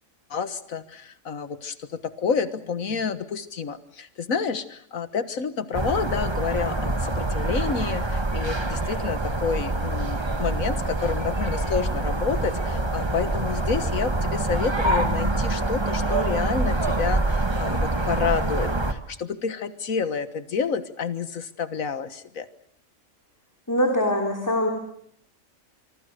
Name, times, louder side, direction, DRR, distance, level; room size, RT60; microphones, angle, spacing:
voice 1, 0.3-22.5, left 6 dB, 80° left, 12 dB, 1.9 m, -29 dB
sound 1, 5.7-18.9, right 2 dB, 20° right, 1.6 m, -25 dB
voice 2, 23.7-24.7, left 1 dB, 15° left, 2 dB, 3.2 m, -23 dB
26.0 x 24.5 x 6.8 m, 0.69 s
omnidirectional pair, 1.4 m